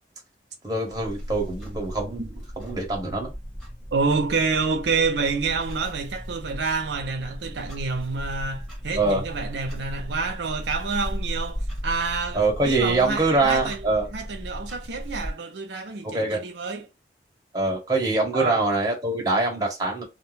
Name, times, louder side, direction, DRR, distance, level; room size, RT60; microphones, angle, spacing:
voice 1, 0.6-3.3 9.0-9.2 12.3-14.1 16.0-16.4 17.5-20.0, right 2 dB, 20° right, 0.9 m, -24 dB
Clock, 0.9-15.3, equal, ahead, 1.1 m, -36 dB
voice 2, 3.9-13.8 14.1-16.8 18.3-18.6, right 4 dB, 80° right, 0.5 m, -28 dB
2.4 x 2.2 x 3.2 m
head